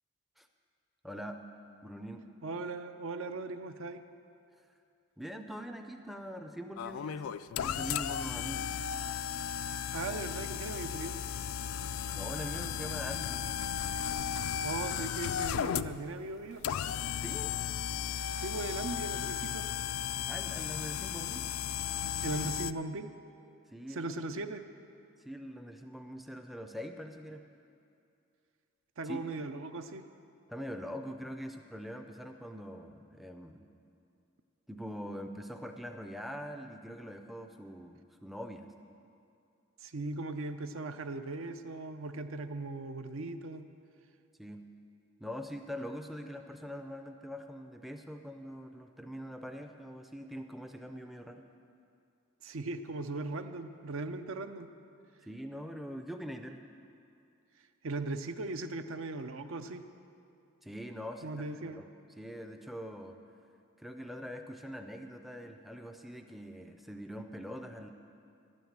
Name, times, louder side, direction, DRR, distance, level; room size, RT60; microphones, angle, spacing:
voice 1, 1.0-1.4 1.8-2.3 4.6-4.7 5.2-8.7 12.1-13.4 17.2-17.6 20.3-21.5 23.7-24.0 25.2-27.5 29.0-29.2 30.5-33.7 34.7-38.7 44.4-44.6 45.2-51.4 55.2-56.6 60.6-61.9 62.2-63.2 63.8-67.9, equal, ahead, 5 dB, 0.4 m, -43 dB
voice 2, 2.4-4.0 9.9-11.2 14.6-16.6 18.3-19.7 22.2-23.1 23.9-24.6 29.0-30.0 39.8-43.7 52.4-54.7 57.8-59.8 61.2-61.8, right 2 dB, 70° right, 9 dB, 0.6 m, -38 dB
sound 1, 6.8-22.7, left 9 dB, 75° left, 0.3 m, -35 dB
11.5 x 9.2 x 7.3 m, 2.5 s
head